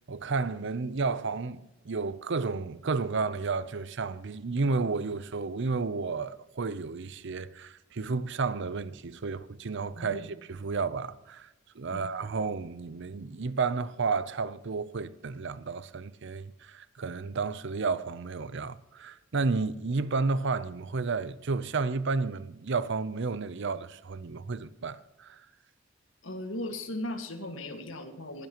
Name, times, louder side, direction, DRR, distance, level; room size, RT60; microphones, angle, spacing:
voice 1, 0.1-11.5 11.8-25.4, right 4 dB, 60° right, 0.6 m, -32 dB
voice 2, 9.9-10.3 11.9-12.0 26.2-28.5, left 1 dB, 70° left, 1.8 m, -37 dB
21.0 x 10.5 x 3.0 m
head